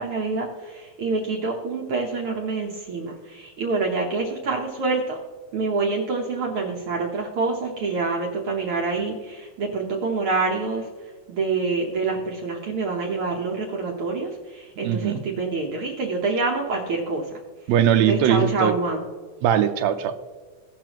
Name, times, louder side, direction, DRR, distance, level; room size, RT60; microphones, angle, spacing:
voice 1, 0.0-5.2 5.5-10.9 11.3-17.3 18.1-19.0, right 3 dB, 65° right, 0 dB, 1.4 m, -26 dB
voice 2, 14.8-15.2 17.7-18.7 19.4-20.1, right 9 dB, 85° right, 6 dB, 1.6 m, -20 dB
17.5 x 6.1 x 3.0 m, 1.5 s
omnidirectional pair, 3.7 m